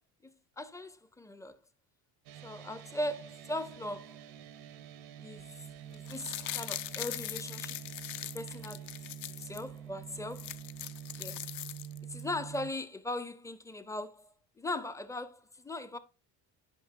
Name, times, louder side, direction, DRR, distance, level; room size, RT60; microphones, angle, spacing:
voice 1, 0.2-1.6 2.4-4.2 5.2-5.6 5.9-7.8 8.3-8.9 9.4-10.5 11.2-11.5 12.0-16.0, left 1 dB, 5° left, 0.4 m, -39 dB
sound 1, 2.3-12.7, right 9 dB, 85° right, 0.9 m, -47 dB
sound 2, 5.9-9.6 10.0-10.1 10.3-12.2 12.5-12.6, left 13 dB, 60° left, 0.5 m, -41 dB
8.9 x 5.1 x 2.5 m
supercardioid pair, 85°, 46 cm